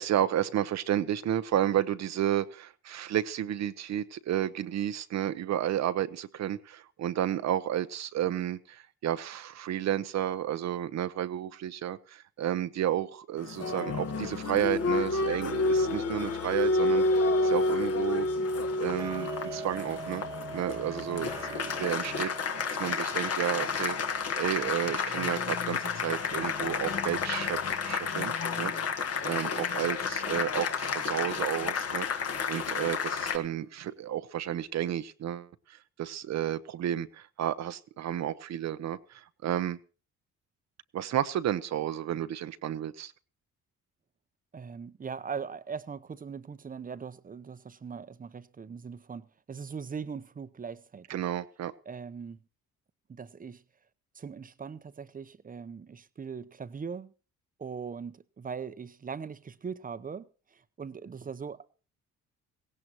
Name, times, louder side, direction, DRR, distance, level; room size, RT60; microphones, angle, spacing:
voice 1, 0.0-18.3 18.8-20.2 20.5-24.0 24.4-28.3 28.6-39.8 40.9-43.1 51.1-51.7, right 11 dB, 65° right, 0.7 m, -32 dB
Applause, 13.4-33.4, left 3 dB, 55° left, 1.4 m, -30 dB
Tick-tock, 19.0-29.8 30.2-30.3 30.9-31.0 31.5-31.6 32.1-32.2 32.7-32.8 33.3-33.4 33.9-34.0, right 4 dB, 10° right, 1.1 m, -45 dB
voice 2, 44.5-51.2 51.9-52.4 53.1-53.6 54.1-57.1 57.6-61.7, right 6 dB, 30° right, 0.7 m, -40 dB
17.5 x 17.0 x 3.0 m
cardioid pair, 90°, 30 cm